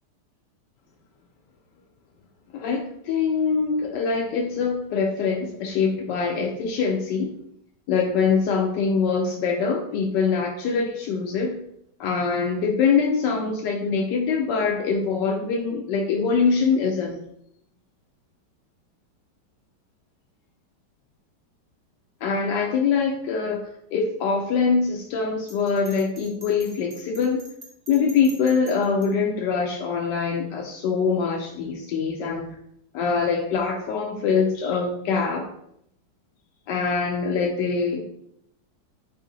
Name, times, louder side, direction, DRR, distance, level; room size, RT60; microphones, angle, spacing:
voice 1, 2.5-7.3 7.9-11.5 12.0-17.2 22.2-23.6 23.9-27.4 27.9-32.5 32.9-35.5 36.7-38.0, left 5 dB, 85° left, 2 dB, 1.2 m, -23 dB
Bell, 25.5-29.1, right 1 dB, 40° right, 1.2 m, -45 dB
4.9 x 2.7 x 3.8 m, 0.72 s
omnidirectional pair, 1.9 m